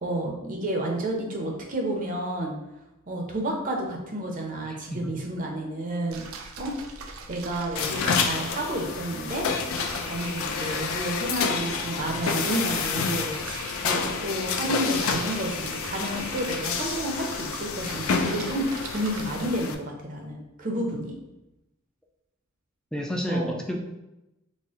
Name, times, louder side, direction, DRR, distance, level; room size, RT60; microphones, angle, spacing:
voice 1, 0.0-2.6 3.1-6.2 6.6-6.7 7.3-9.5 10.0-21.1 23.3-23.5, right 1 dB, 40° right, 1 dB, 0.6 m, -31 dB
sound 1, 6.1-19.6, right 3 dB, 80° right, 0.5 m, -43 dB
sound 2, 7.8-19.8, left 5 dB, 75° left, 0.4 m, -29 dB
voice 2, 22.9-23.8, equal, 5° left, 1 dB, 0.3 m, -30 dB
4.2 x 2.0 x 3.5 m, 0.95 s
head